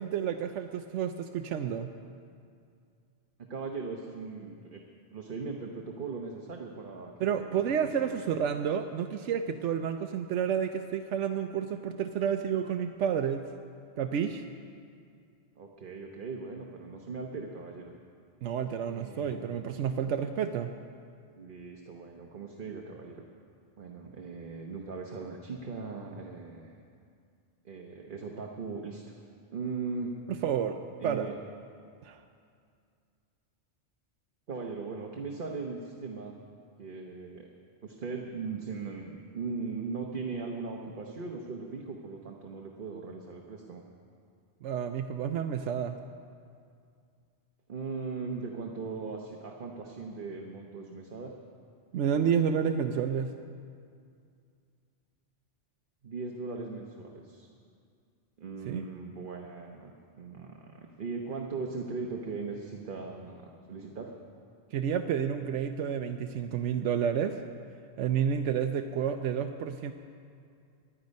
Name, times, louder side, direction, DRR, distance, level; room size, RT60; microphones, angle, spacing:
voice 1, 0.0-1.9 7.2-13.5 14.0-14.5 18.4-20.7 30.4-30.8 31.0-31.3 32.0-32.2 44.6-45.9 51.9-53.3 58.7-58.8 64.7-67.4 68.0-69.9, right 8 dB, 90° right, 6 dB, 1.0 m, -30 dB
voice 2, 3.4-4.8 5.1-8.2 15.6-17.9 18.9-19.5 21.4-23.3 23.8-26.8 27.6-29.1 29.5-30.1 31.0-31.3 34.5-36.3 36.8-37.5 37.8-43.8 47.7-51.3 56.0-57.5 58.4-64.1, right 4 dB, 50° right, 1 dB, 1.2 m, -39 dB
24.0 x 10.0 x 5.3 m, 2.3 s
omnidirectional pair, 1.2 m